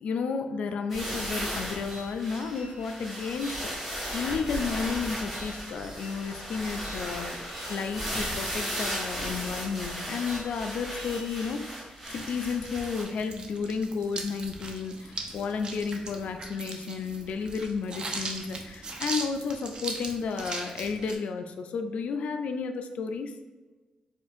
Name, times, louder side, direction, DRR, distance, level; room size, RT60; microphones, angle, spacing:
voice 1, 0.0-23.3, left 5 dB, 70° left, 7 dB, 0.3 m, -32 dB
sound 1, 0.9-13.0, equal, 15° right, 1.0 m, -36 dB
sound 2, 1.3-11.5, equal, 70° right, 1.0 m, -50 dB
sound 3, 12.0-21.2, right 3 dB, 40° right, 0.4 m, -39 dB
4.3 x 2.5 x 2.4 m, 1.3 s
wide cardioid pair, 155°, 2 cm